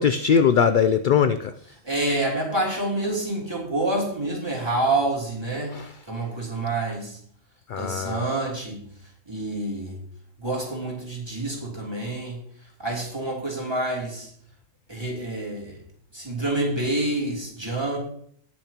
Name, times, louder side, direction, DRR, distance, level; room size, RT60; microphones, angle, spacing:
voice 1, 0.0-1.5 5.7-5.9 7.7-8.3, left 7 dB, 65° left, 10 dB, 0.5 m, -21 dB
voice 2, 1.6-5.8 6.1-7.2 7.8-8.8 9.2-10.0 10.4-12.4 12.8-14.3 14.9-15.8 16.1-18.0, right 2 dB, 20° right, -3 dB, 3.3 m, -27 dB
20.0 x 6.9 x 3.0 m, 0.64 s
omnidirectional pair, 1.3 m